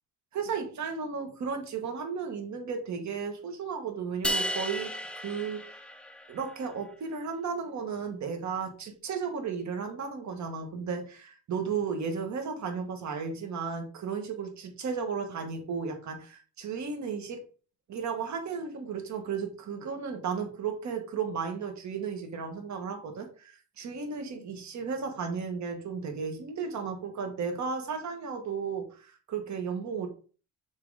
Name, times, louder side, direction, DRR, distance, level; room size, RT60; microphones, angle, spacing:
voice 1, 0.3-5.8 6.3-17.4 17.9-30.1, right 5 dB, 55° right, 5 dB, 1.7 m, -34 dB
sound 1, 4.2-6.5, equal, 5° left, 0.6 m, -34 dB
6.6 x 3.7 x 4.9 m, 0.38 s
cardioid pair, 145°, 34 cm